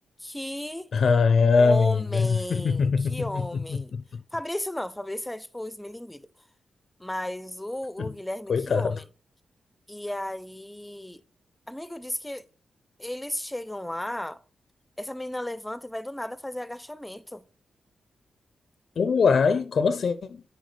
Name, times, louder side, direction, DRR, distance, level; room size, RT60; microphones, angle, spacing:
voice 1, 0.2-0.9 1.6-3.9 4.3-6.3 7.0-9.0 9.9-11.2 11.7-12.5 13.0-14.4 15.0-17.5, left 1 dB, 10° left, 0.5 m, -34 dB
voice 2, 0.9-3.4 3.7-3.8 4.1-4.2 8.0-8.1 8.5-9.0 19.0-20.4, left 5 dB, 65° left, 0.4 m, -22 dB
10.0 x 4.7 x 3.3 m
cardioid pair, 75°, 0 cm